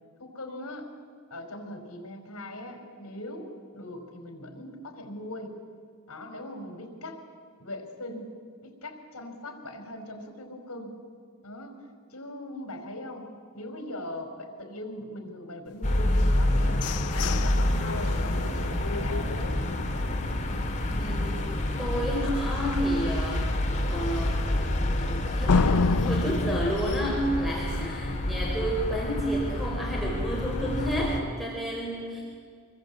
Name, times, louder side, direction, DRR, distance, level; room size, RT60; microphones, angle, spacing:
voice 1, 0.2-0.9 1.3-5.5 6.1-7.2 7.6-8.3 8.6-11.0 11.4-11.8 12.1-16.8 17.2-19.5, left 1 dB, 70° left, 4 dB, 4.9 m, -40 dB
sound 1, 15.8-31.2, left 1 dB, 35° left, 2.5 m, -28 dB
sound 2, 16.2-20.1 20.5-20.6 21.0-21.4 21.8-21.9 22.4-22.5 25.5-28.1, left 4 dB, 90° left, 0.7 m, -30 dB
voice 2, 21.0-21.4 21.8-23.5 23.9-32.2, equal, ahead, -3 dB, 4.3 m, -31 dB
26.5 x 21.5 x 8.6 m, 2.1 s
head